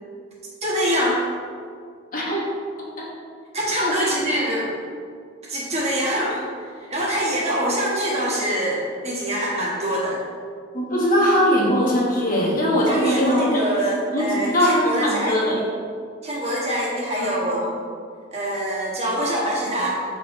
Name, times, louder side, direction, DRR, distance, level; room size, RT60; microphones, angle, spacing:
voice 1, 0.6-1.2 3.5-4.7 5.5-6.4 6.8-10.2 12.9-15.6 16.2-17.7 18.3-20.0, equal, 35° right, -5 dB, 1.4 m, -24 dB
voice 2, 2.1-2.5 3.0-3.1 4.0-4.1 10.7-13.6 14.1-15.6 17.2-17.7, equal, 45° left, -4 dB, 1.4 m, -21 dB
7.1 x 3.8 x 4.2 m, 2.1 s
head